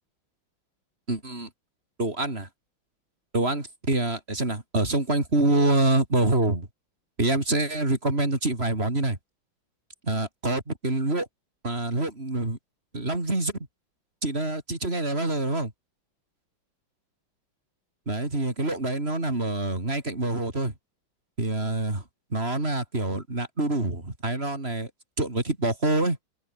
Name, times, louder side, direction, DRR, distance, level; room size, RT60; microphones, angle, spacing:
voice 1, 1.1-1.5 2.0-2.5 3.3-6.7 7.2-9.2 10.0-11.3 11.6-12.6 12.9-13.5 14.2-15.7 18.1-20.7 21.4-22.0 22.3-24.9 25.2-26.2, right 2 dB, 30° right, 4.8 m, -26 dB
open air
omnidirectional pair, 2.2 m